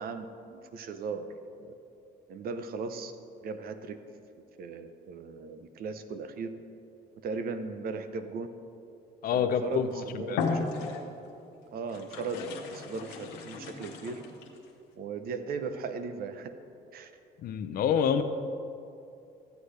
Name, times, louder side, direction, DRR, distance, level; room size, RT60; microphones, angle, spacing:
voice 1, 0.0-1.3 1.6-1.7 2.3-3.1 3.4-4.0 4.6-6.5 7.2-8.5 9.3-11.1 11.7-14.2 15.0-16.5 16.9-17.1, right 4 dB, 60° right, 9 dB, 0.7 m, -37 dB
voice 2, 9.2-10.4 17.4-18.2, left 7 dB, 60° left, 10 dB, 0.6 m, -27 dB
sound 1, 9.6-9.9 10.3-11.3 11.9-14.6, left 4 dB, 90° left, 1.1 m, -35 dB
13.0 x 8.2 x 3.3 m, 2.7 s
cardioid pair, 110°, 17 cm